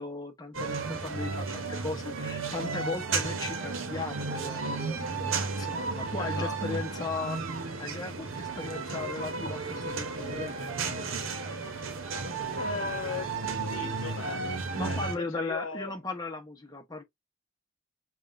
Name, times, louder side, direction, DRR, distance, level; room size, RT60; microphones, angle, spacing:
voice 1, 0.0-10.5 14.7-17.0, left 3 dB, 20° left, 0.9 m, -37 dB
sound 1, 0.5-15.1, right 4 dB, 75° right, 0.9 m, -33 dB
voice 2, 6.2-6.6 12.5-13.4 13.7-16.0, left 4 dB, 75° left, 0.9 m, -38 dB
5.3 x 2.4 x 2.6 m
head